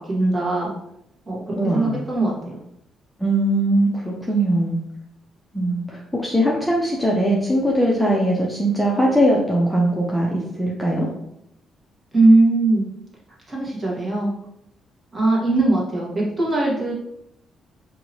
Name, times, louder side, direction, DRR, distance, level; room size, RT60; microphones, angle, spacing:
voice 1, 0.1-0.7 1.3-1.4 1.7-2.6 12.1-12.8 13.5-14.3 15.1-16.9, right 2 dB, 30° right, -5 dB, 1.4 m, -19 dB
voice 2, 1.5-2.0 3.2-4.8 5.5-11.1, right 1 dB, 5° left, -3 dB, 0.5 m, -20 dB
2.8 x 2.7 x 2.9 m, 0.78 s
cardioid pair, 90°, 0 cm